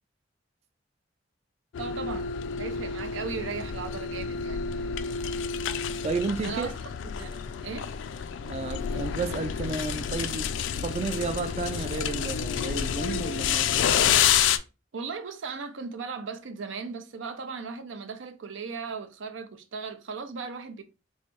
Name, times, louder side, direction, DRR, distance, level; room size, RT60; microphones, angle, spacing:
sound 1, 1.7-14.6, left 8 dB, 80° left, 0.3 m, -29 dB
voice 1, 1.8-2.3 2.6-4.9 6.4-6.8 7.2-7.9 14.9-20.8, right 5 dB, 90° right, 0.5 m, -37 dB
voice 2, 6.0-6.7 8.4-13.8, right 4 dB, 35° right, 0.3 m, -32 dB
3.5 x 3.1 x 2.9 m
head